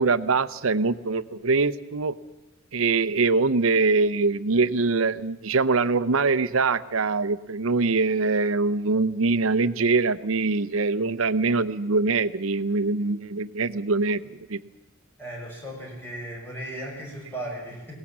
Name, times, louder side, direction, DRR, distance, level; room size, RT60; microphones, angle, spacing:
voice 1, 0.0-2.1 2.7-14.6, right 3 dB, 80° right, 14 dB, 0.7 m, -23 dB
voice 2, 15.2-18.0, right 1 dB, 10° left, -2 dB, 6.0 m, -36 dB
20.5 x 17.5 x 7.3 m, 1.0 s
head